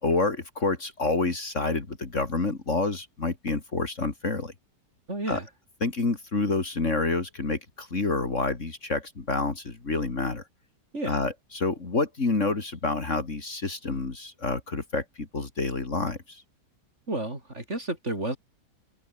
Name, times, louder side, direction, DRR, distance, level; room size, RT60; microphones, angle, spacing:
voice 1, 0.0-4.5 5.3-5.4 5.8-10.4 11.1-16.4, left 3 dB, 45° left, 3.0 m, -28 dB
voice 2, 5.1-5.5 10.9-11.1 17.1-18.4, right 2 dB, 40° right, 6.1 m, -31 dB
open air
omnidirectional pair, 1.8 m